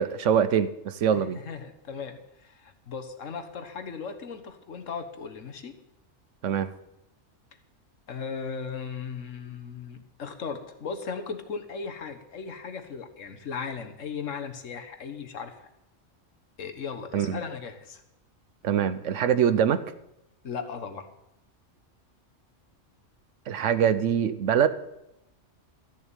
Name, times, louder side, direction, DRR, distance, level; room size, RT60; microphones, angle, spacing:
voice 1, 0.0-1.4 6.4-6.7 17.1-17.4 18.6-19.8 23.5-24.7, right 8 dB, 80° right, 13 dB, 1.1 m, -23 dB
voice 2, 1.1-5.7 8.1-15.6 16.6-18.0 20.4-21.1, left 5 dB, 85° left, 7 dB, 1.7 m, -37 dB
13.5 x 7.0 x 9.0 m, 0.85 s
omnidirectional pair, 1.3 m